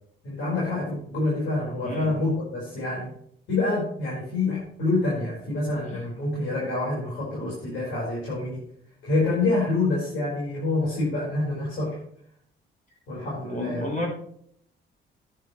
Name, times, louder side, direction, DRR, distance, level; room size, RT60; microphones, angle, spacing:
voice 1, 0.2-3.1 3.5-8.6 9.0-12.0 13.1-13.9, left 2 dB, 75° left, -6 dB, 5.0 m, -27 dB
voice 2, 1.8-2.1 13.5-14.1, left 2 dB, 40° left, 0 dB, 3.2 m, -31 dB
10.5 x 9.6 x 3.3 m, 0.64 s
cardioid pair, 90°, 20 cm